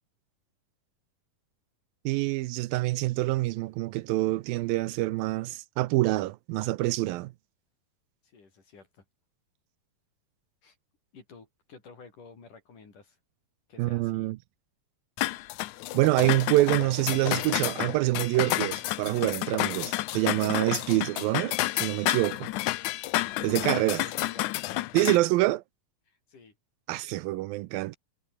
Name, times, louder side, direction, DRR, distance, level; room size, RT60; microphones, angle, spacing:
voice 1, 2.1-7.3 13.8-14.4 15.9-22.5 23.4-24.0 24.9-25.6 26.9-28.0, right 18 dB, 80° right, 2.4 m, -26 dB
voice 2, 8.2-9.0 10.6-10.8 11.1-13.2 13.7-14.3 23.4-25.0 26.1-26.5, left 4 dB, 60° left, 6.8 m, -51 dB
sound 1, 15.2-25.2, left 17 dB, 80° left, 1.8 m, -30 dB
omnidirectional pair, 4.2 m